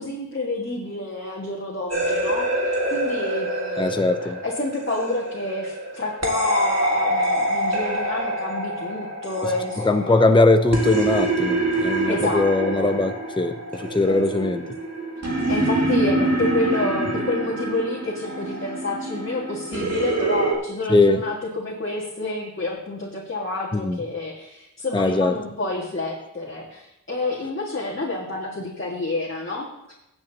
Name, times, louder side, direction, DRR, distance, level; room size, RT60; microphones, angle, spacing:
voice 1, 0.0-10.3 12.1-12.9 14.1-14.5 15.5-29.9, left 2 dB, 35° left, -5 dB, 1.9 m, -29 dB
sound 1, 1.9-20.6, right 1 dB, 50° right, 2.1 m, -26 dB
voice 2, 3.8-4.4 9.8-14.6 20.9-21.2 23.7-24.0 24.9-25.3, left 2 dB, 15° left, 8 dB, 0.6 m, -20 dB
16.0 x 7.9 x 2.9 m, 0.85 s
cardioid pair, 45°, 33 cm